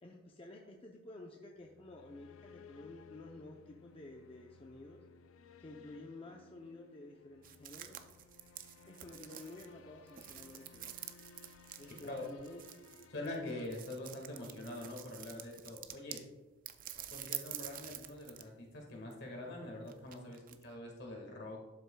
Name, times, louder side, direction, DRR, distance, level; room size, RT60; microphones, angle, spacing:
voice 1, 0.0-5.0 5.6-8.0 8.9-10.9 11.8-12.6 13.0-13.1 14.4-14.5, left 2 dB, 30° left, 1 dB, 0.6 m, -52 dB
sound 1, 1.6-14.4, left 5 dB, 85° left, 0.4 m, -60 dB
sound 2, 7.4-16.3 16.7-18.5 18.8-20.7, right 11 dB, 45° right, 0.4 m, -48 dB
voice 2, 13.1-16.2 17.1-21.6, left 1 dB, 55° left, 0 dB, 1.7 m, -44 dB
11.5 x 6.8 x 2.2 m, 1.2 s
head